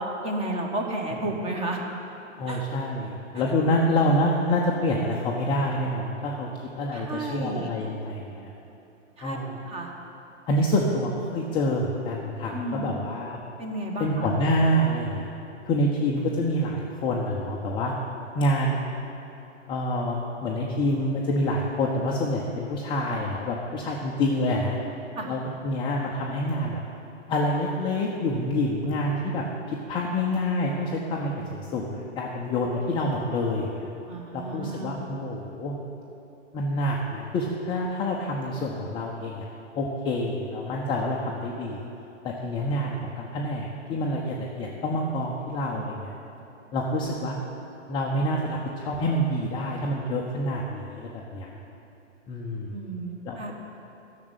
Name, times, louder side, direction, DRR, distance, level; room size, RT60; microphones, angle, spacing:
voice 1, 0.0-1.8 2.5-2.7 6.9-7.7 9.2-9.4 9.6-9.9 10.9-11.0 12.5-12.9 13.6-14.2 25.2-25.3 34.1-34.9 52.7-53.5, right 2 dB, 15° right, 2 dB, 1.2 m, -32 dB
voice 2, 2.4-6.5 6.7-8.5 9.2-9.6 10.5-13.4 14.0-15.3 15.7-17.9 18.3-18.8 19.7-24.8 25.2-26.8 27.3-33.9 34.3-35.7 36.5-39.4 39.8-41.8 42.2-46.1 46.7-47.3 47.9-51.5 52.3-52.7 53.3-53.5, left 1 dB, 15° left, -3 dB, 0.6 m, -27 dB
12.0 x 6.6 x 8.0 m, 2.9 s
figure-of-eight pair, 115°, 38 cm